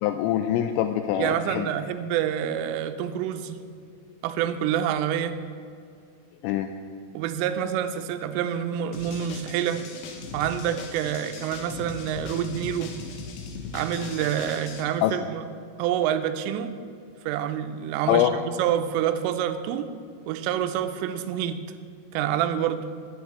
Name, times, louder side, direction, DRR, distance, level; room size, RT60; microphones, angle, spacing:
voice 1, 0.0-1.7 6.4-6.7 15.0-15.2 18.1-18.3, left 11 dB, 85° left, 7 dB, 2.6 m, -24 dB
voice 2, 1.2-3.6 4.2-5.4 7.1-9.8 10.3-12.9 13.7-15.4 15.8-16.7 17.2-19.9 20.3-21.6 22.1-22.9, right 10 dB, 90° right, 10 dB, 3.2 m, -27 dB
sound 1, 8.9-14.8, left 4 dB, 70° left, 2.5 m, -39 dB
9.5 x 9.4 x 8.1 m, 2.4 s
omnidirectional pair, 5.6 m